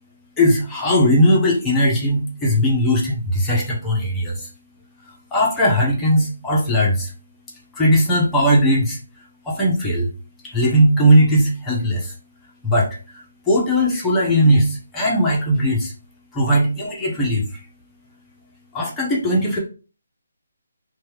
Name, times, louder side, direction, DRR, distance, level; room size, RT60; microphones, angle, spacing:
voice 1, 0.4-4.5 5.1-7.1 7.7-9.0 9.4-10.1 10.4-12.1 12.6-15.9 16.3-17.6 18.7-19.6, equal, 10° left, -4 dB, 0.8 m, -18 dB
2.9 x 2.3 x 2.9 m, 0.36 s
figure-of-eight pair, 155°, 0 cm